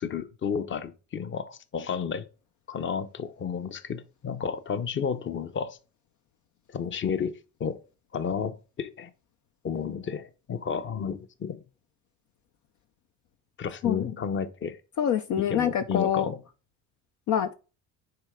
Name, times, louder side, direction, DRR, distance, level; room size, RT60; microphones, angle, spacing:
voice 1, 0.0-2.3 2.7-5.8 6.7-7.8 8.1-9.1 9.6-11.7 13.6-14.8 15.4-16.4, left 6 dB, 35° left, 1.0 m, -32 dB
voice 2, 15.0-16.3 17.3-17.5, left 9 dB, 60° left, 0.7 m, -25 dB
9.9 x 4.2 x 3.7 m
cardioid pair, 105°, 34 cm